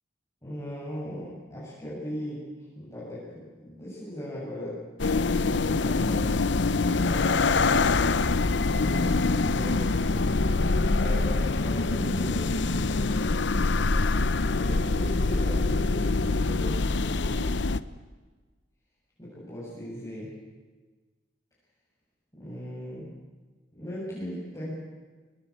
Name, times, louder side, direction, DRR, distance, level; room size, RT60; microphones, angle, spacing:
voice 1, 0.4-2.4 2.7-8.0 8.6-13.2 14.5-17.6 19.2-20.3 22.3-23.2 23.7-24.7, equal, 20° left, -10 dB, 7.7 m, -38 dB
sound 1, 5.0-17.8, left 3 dB, 75° left, 0.8 m, -25 dB
24.5 x 19.5 x 8.8 m, 1.3 s
head